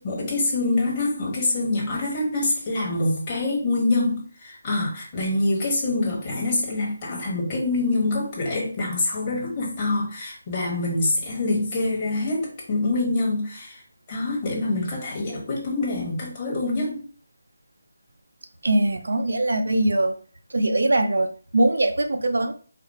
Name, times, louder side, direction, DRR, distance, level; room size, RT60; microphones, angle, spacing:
voice 1, 0.0-13.8 14.1-17.1, left 2 dB, 20° left, -3 dB, 1.4 m, -25 dB
voice 2, 18.6-20.1 20.5-22.5, right 2 dB, 80° right, 6 dB, 0.7 m, -22 dB
4.2 x 2.0 x 4.2 m, 0.41 s
figure-of-eight pair, 175°, 0 cm